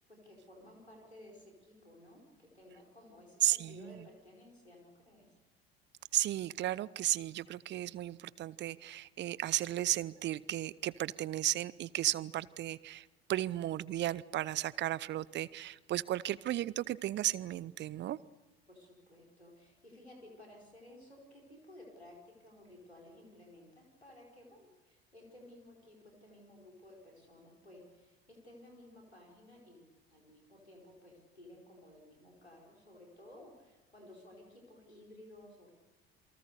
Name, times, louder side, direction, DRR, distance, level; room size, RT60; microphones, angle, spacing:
voice 1, 0.0-5.3 18.7-35.7, left 1 dB, 90° left, 0 dB, 4.8 m, -56 dB
voice 2, 3.4-4.1 6.1-18.2, right 14 dB, 35° right, 21 dB, 0.8 m, -34 dB
28.5 x 23.5 x 6.8 m, 1.1 s
figure-of-eight pair, 65°, 31 cm